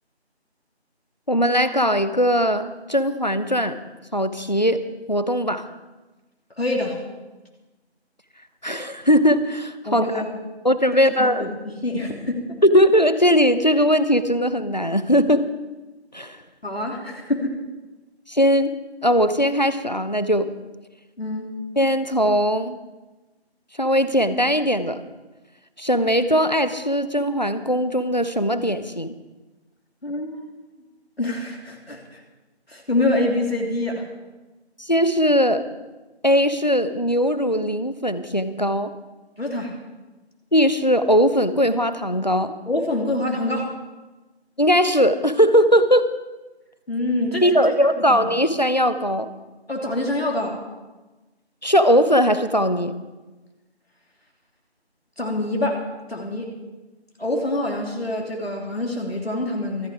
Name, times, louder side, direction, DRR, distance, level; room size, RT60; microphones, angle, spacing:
voice 1, 1.3-3.8 4.1-5.7 8.6-10.1 10.6-11.4 12.6-15.5 16.1-16.4 18.3-18.8 19.0-20.5 21.8-22.8 23.8-25.0 25.8-29.1 34.8-35.7 36.2-38.9 40.5-42.5 44.6-46.1 47.4-49.3 51.6-52.9, equal, 40° left, 12 dB, 0.9 m, -19 dB
voice 2, 6.6-7.0 9.9-10.4 11.2-12.6 16.6-17.6 21.2-21.6 30.0-30.5 31.2-32.2 32.7-34.0 39.4-39.8 42.7-43.7 46.9-47.7 48.1-48.2 49.7-50.6 55.2-55.8 56.1-56.5 57.2-59.9, left 1 dB, 65° left, 1 dB, 2.9 m, -26 dB
24.5 x 8.5 x 4.9 m, 1.2 s
figure-of-eight pair, 180°, 33 cm